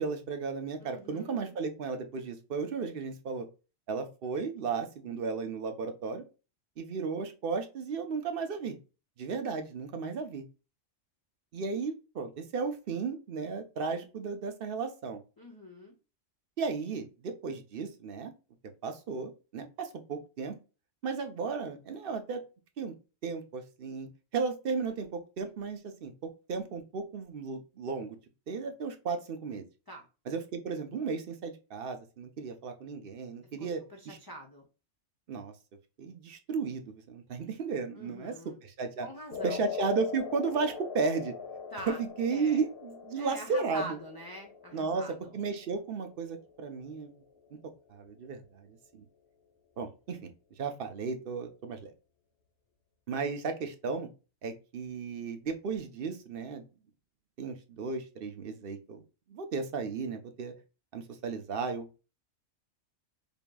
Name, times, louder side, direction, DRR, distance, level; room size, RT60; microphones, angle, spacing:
voice 1, 0.0-3.5 3.9-6.2 6.8-8.8 9.2-10.4 11.5-15.2 16.6-18.3 18.8-20.6 21.0-22.4 22.8-22.9 23.2-26.1 26.5-28.2 28.5-29.6 30.3-34.2 35.3-35.5 36.0-38.4 38.6-39.1 39.4-41.3 41.9-44.0 44.7-47.1 47.5-47.6 47.9-49.0 49.8-51.9 53.1-54.1 54.4-56.6 57.4-59.0 59.3-60.5 60.9-62.0, right 5 dB, 55° right, 7 dB, 0.9 m, -34 dB
voice 2, 0.8-1.6 15.4-15.9 29.9-30.1 33.6-34.7 37.9-38.6 39.0-39.7 41.7-42.0 42.3-42.6 43.1-45.3, equal, 25° left, -1 dB, 0.7 m, -45 dB
sound 1, 39.3-47.7, left 7 dB, 55° left, 0.9 m, -42 dB
5.3 x 2.9 x 2.3 m, 0.31 s
omnidirectional pair, 1.2 m